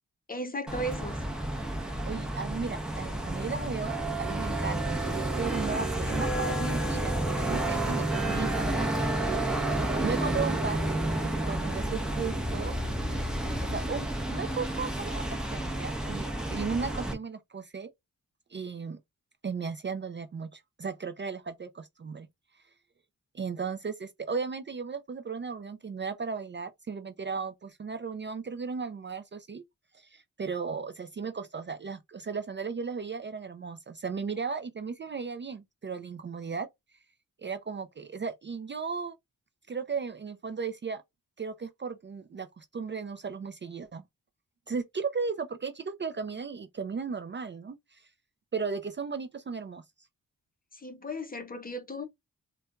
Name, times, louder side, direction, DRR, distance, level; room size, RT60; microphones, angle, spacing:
voice 1, 0.3-1.2 9.3-9.5 50.7-52.1, equal, 25° left, 0.7 m, -36 dB
sound 1, 0.7-17.1, right 1 dB, ahead, 0.8 m, -30 dB
voice 2, 2.0-9.5 9.9-12.8 13.0-13.2 13.5-17.9 18.5-19.0 19.4-22.3 22.5-22.6 23.3-29.6 29.9-36.7 37.4-39.2 39.7-41.0 41.4-44.0 44.7-48.1 48.5-49.8, right 5 dB, 35° right, 0.4 m, -36 dB
4.2 x 2.2 x 2.3 m
wide cardioid pair, 90°, 33 cm